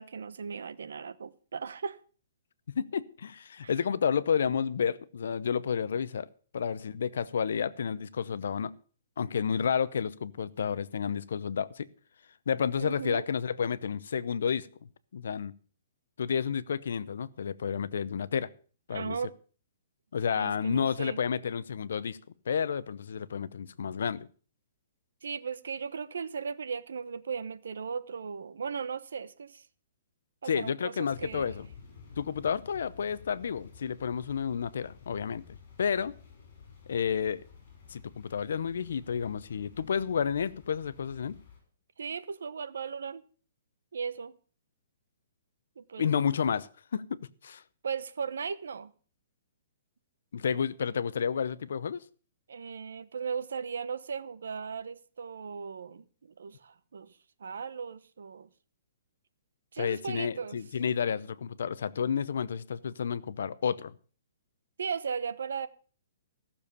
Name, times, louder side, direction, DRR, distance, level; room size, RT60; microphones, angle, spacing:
voice 1, 0.0-2.0 3.6-3.7 12.8-13.3 18.9-19.3 20.3-21.2 25.2-29.7 30.4-31.5 42.0-43.2 43.9-44.3 45.8-46.1 47.8-48.9 52.5-58.5 59.7-60.6 64.8-65.7, right 6 dB, 85° right, 0.9 m, -37 dB
voice 2, 2.7-6.3 6.5-8.7 9.2-11.9 12.5-14.7 15.1-15.5 16.2-18.5 18.9-19.2 20.1-22.2 22.5-24.3 30.5-31.7 32.2-35.4 35.8-36.2 36.9-37.4 37.9-41.4 46.0-47.6 50.3-52.0 59.8-63.9, left 7 dB, 65° left, 0.7 m, -31 dB
sound 1, 31.1-41.6, left 6 dB, 40° left, 5.7 m, -53 dB
15.0 x 7.0 x 6.7 m
hypercardioid pair, 175°, 0 cm